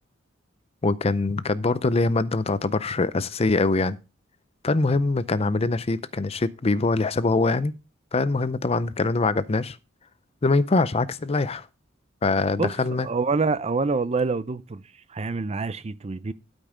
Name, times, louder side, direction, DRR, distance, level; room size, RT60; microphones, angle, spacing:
voice 1, 0.8-4.0 4.6-7.7 8.1-9.8 10.4-11.7 12.2-13.1, left 3 dB, 30° left, 0.5 m, -23 dB
voice 2, 13.0-14.8 15.1-16.3, right 4 dB, 35° right, 0.5 m, -26 dB
12.5 x 5.3 x 5.0 m
head